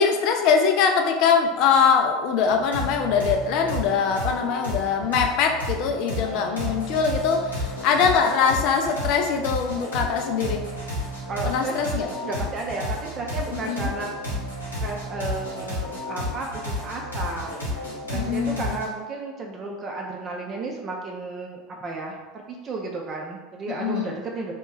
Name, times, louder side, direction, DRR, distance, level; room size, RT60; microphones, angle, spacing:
voice 1, 0.0-10.7 11.4-12.1 13.5-13.9 18.1-18.8 23.7-24.2, left 6 dB, 50° left, 4 dB, 0.4 m, -22 dB
sound 1, 2.4-18.9, left 1 dB, 85° left, 1.0 m, -32 dB
voice 2, 6.2-6.6 11.3-14.1 14.8-24.5, right 3 dB, 35° right, 0 dB, 0.6 m, -33 dB
2.9 x 2.3 x 3.8 m, 1.2 s
figure-of-eight pair, 75°, 0 cm